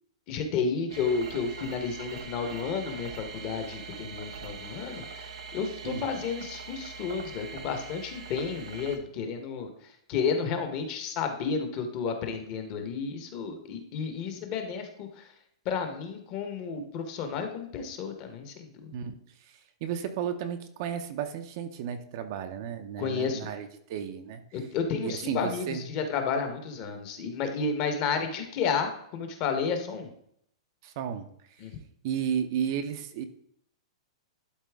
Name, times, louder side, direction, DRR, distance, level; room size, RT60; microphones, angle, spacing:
voice 1, 0.3-15.3 15.6-18.9 23.0-23.5 24.5-30.1 31.6-31.7, left 5 dB, 30° left, 6 dB, 1.0 m, -32 dB
sound 1, 0.9-9.0, right 5 dB, 85° right, 1.2 m, -42 dB
voice 2, 18.9-24.4 25.0-25.8 30.8-31.3 32.0-33.2, right 8 dB, 35° right, 8 dB, 0.6 m, -33 dB
11.5 x 4.1 x 3.5 m, 0.71 s
supercardioid pair, 170°, 3 cm